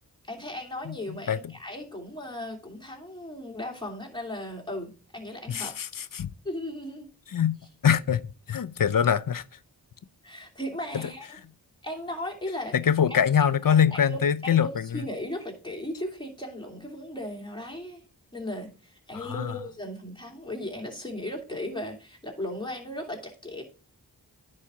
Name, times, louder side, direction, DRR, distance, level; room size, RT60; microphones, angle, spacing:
voice 1, 0.2-5.7 6.4-7.1 10.2-11.3 11.8-12.8 13.1-13.2 13.6-18.0 18.3-23.6, left 1 dB, 10° left, 2.7 m, -36 dB
voice 2, 0.8-1.4 5.5-6.3 7.3-7.6 7.8-8.2 8.5-9.4 10.9-11.1 12.7-15.0 19.1-19.5, left 8 dB, 55° left, 0.6 m, -24 dB
10.0 x 4.4 x 4.8 m
wide cardioid pair, 55°, 40 cm